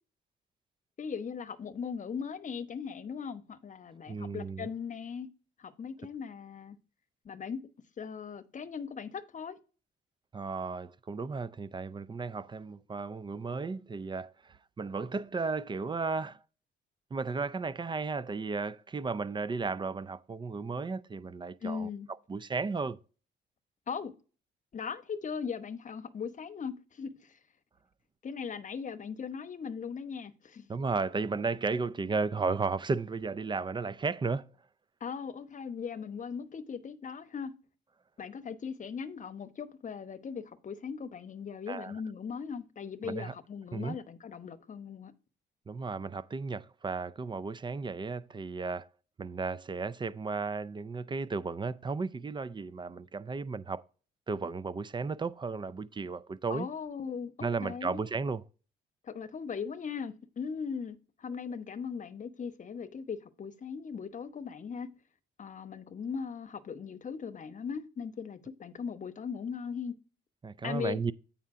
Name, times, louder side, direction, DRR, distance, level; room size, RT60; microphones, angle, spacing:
voice 1, 1.0-5.3 5.6-6.8 7.2-7.6 8.0-9.6 21.6-22.1 23.9-24.1 24.7-27.3 28.2-30.7 35.0-37.5 38.2-45.1 56.5-58.0 59.0-64.9 65.4-69.9 70.6-71.0, left 6 dB, 40° left, 0.9 m, -39 dB
voice 2, 4.1-4.7 10.3-16.4 17.1-21.9 22.3-23.0 30.7-34.5 41.7-42.0 43.0-43.3 43.7-44.0 45.7-48.9 49.2-53.8 54.3-56.7 57.4-58.4 70.4-71.1, right 4 dB, 25° right, 0.4 m, -34 dB
8.6 x 5.6 x 3.6 m
cardioid pair, 90°, 20 cm